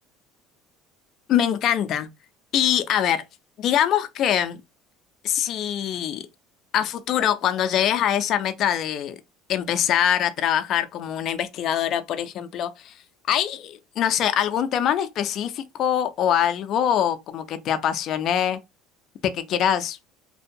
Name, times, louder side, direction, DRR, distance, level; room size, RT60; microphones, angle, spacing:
voice 1, 1.3-2.1 2.5-3.2 3.6-4.6 5.2-6.2 6.7-9.2 9.5-12.9 13.3-18.6 19.2-20.0, left 10 dB, 45° left, 0.4 m, -23 dB
2.6 x 2.1 x 2.6 m
cardioid pair, 150°, 0 cm